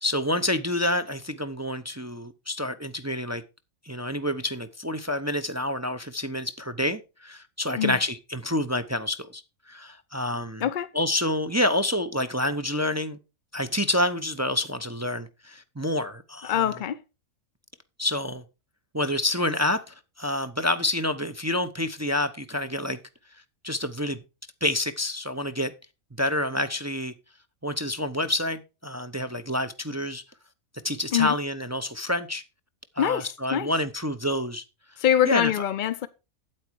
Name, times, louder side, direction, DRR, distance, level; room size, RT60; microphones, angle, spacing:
voice 1, 0.0-3.4 3.8-9.4 9.7-10.7 10.9-13.2 13.5-16.6 18.0-18.4 18.9-23.0 23.6-24.2 24.6-25.7 26.2-27.1 27.6-30.2 30.8-32.4 33.0-34.6 35.2-35.5, left 1 dB, 15° right, 0.6 m, -28 dB
voice 2, 16.4-17.0 31.1-31.3 33.0-33.7 35.0-36.1, left 10 dB, 60° left, 0.5 m, -24 dB
8.8 x 8.4 x 4.6 m
omnidirectional pair, 1.4 m